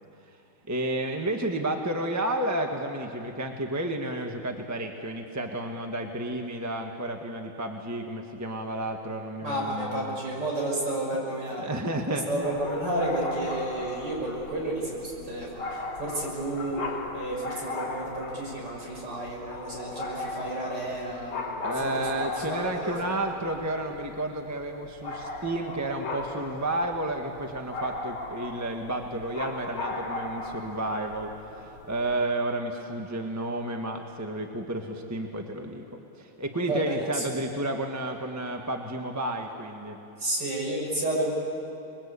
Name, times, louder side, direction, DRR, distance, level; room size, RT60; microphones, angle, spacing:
voice 1, 0.7-10.2 11.6-12.5 21.6-35.8 36.2-40.0, right 1 dB, 10° right, 3 dB, 1.2 m, -31 dB
voice 2, 9.4-11.7 12.1-22.1 22.6-23.2 36.7-37.3 40.2-41.3, right 1 dB, 55° right, -2 dB, 6.8 m, -31 dB
sound 1, 12.4-32.2, left 2 dB, 80° left, 3.0 m, -37 dB
27.0 x 21.5 x 8.3 m, 2.8 s
omnidirectional pair, 2.3 m